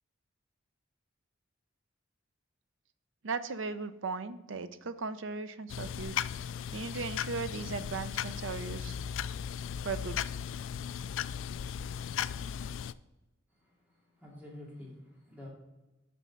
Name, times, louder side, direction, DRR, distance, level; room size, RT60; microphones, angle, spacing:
voice 1, 3.2-6.3 6.7-9.0 9.8-10.2, right 4 dB, 65° right, 0.6 m, -37 dB
sound 1, 5.7-12.9, left 8 dB, 65° left, 0.3 m, -37 dB
voice 2, 13.5-15.5, left 1 dB, 10° right, 2.5 m, -49 dB
6.9 x 6.2 x 5.6 m
head